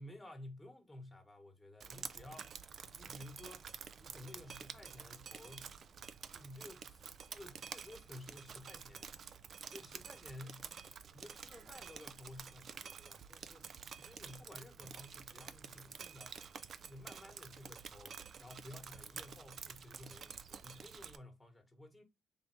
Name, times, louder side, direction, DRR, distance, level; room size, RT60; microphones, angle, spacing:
voice 1, 0.0-2.6 2.9-5.7 6.3-9.1 9.7-10.7 11.1-16.4 16.8-22.0, left 1 dB, 15° left, 1.2 m, -54 dB
Drip, 1.8-21.2, right 6 dB, 55° right, 0.4 m, -50 dB
3.5 x 2.8 x 4.2 m
cardioid pair, 90°, 0 cm